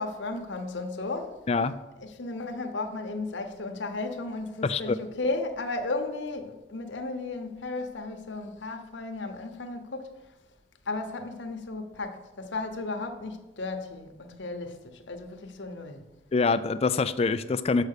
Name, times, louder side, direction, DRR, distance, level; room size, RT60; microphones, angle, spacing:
voice 1, 0.0-1.3 2.0-10.2 10.9-16.0, left 3 dB, 75° left, 0.9 m, -34 dB
voice 2, 4.6-5.0 16.3-17.8, left 4 dB, 30° left, 0.3 m, -25 dB
6.6 x 5.9 x 6.6 m
head